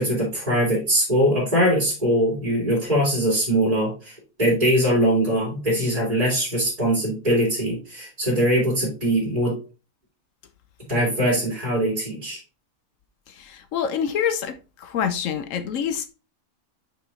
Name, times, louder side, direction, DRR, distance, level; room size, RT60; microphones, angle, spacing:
voice 1, 0.0-9.5 10.9-12.4, equal, 25° right, 2.6 m, -22 dB
voice 2, 13.3-16.1, left 8 dB, 70° left, 1.0 m, -27 dB
5.3 x 5.0 x 3.6 m
omnidirectional pair, 1.5 m